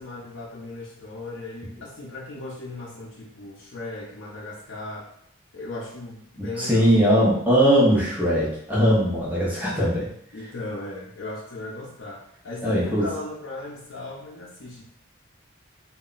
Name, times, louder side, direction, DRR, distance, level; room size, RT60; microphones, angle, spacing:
voice 1, 0.0-5.1 5.5-6.9 10.3-14.8, left 2 dB, 75° left, -5 dB, 0.6 m, -37 dB
voice 2, 6.4-10.1 12.6-13.1, equal, 10° right, -6 dB, 0.7 m, -20 dB
2.2 x 2.0 x 3.8 m, 0.69 s
head